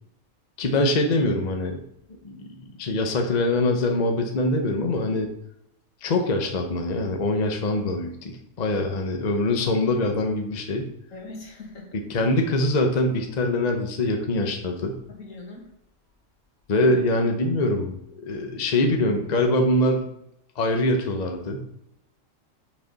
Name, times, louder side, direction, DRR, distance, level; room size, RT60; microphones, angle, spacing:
voice 1, 0.6-1.8 2.2-5.3 6.0-10.9 12.1-15.0 16.7-18.0 18.2-20.0 20.6-21.7, left 1 dB, 40° left, 3 dB, 0.8 m, -23 dB
voice 2, 11.1-12.0 15.1-15.7, left 3 dB, 75° left, -2 dB, 2.2 m, -41 dB
6.7 x 5.8 x 4.0 m, 0.80 s
omnidirectional pair, 1.4 m